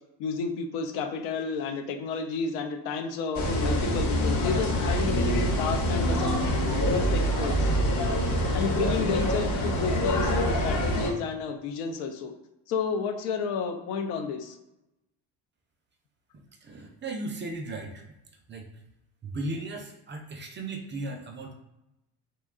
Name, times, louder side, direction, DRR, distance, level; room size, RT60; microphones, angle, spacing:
voice 1, 0.2-6.4 6.9-7.7 8.5-12.3 12.7-14.6, left 5 dB, 85° left, 5 dB, 0.5 m, -31 dB
sound 1, 3.3-11.1, equal, 40° left, 0.7 m, -25 dB
voice 2, 16.3-18.0 18.5-18.7 19.2-21.5, right 2 dB, 30° right, 3 dB, 0.3 m, -36 dB
2.8 x 2.2 x 2.3 m, 0.92 s
supercardioid pair, 80°, 44 cm